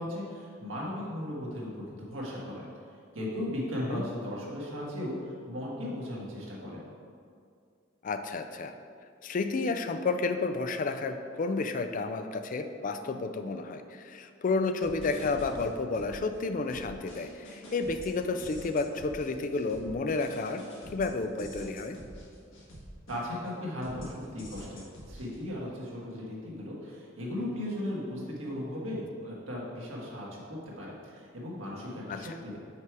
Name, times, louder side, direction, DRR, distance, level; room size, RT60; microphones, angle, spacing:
voice 1, 0.0-2.6 3.1-6.8 23.1-32.6, left 1 dB, 85° right, -4 dB, 1.6 m, -37 dB
voice 2, 8.0-8.7 9.2-20.6 20.9-22.0 32.1-32.4, left 3 dB, 45° left, 8 dB, 0.4 m, -31 dB
sound 1, 14.8-16.4 16.7-23.5 23.8-25.4, equal, 85° left, 1.6 m, -47 dB
5.8 x 4.6 x 4.7 m, 2.3 s
head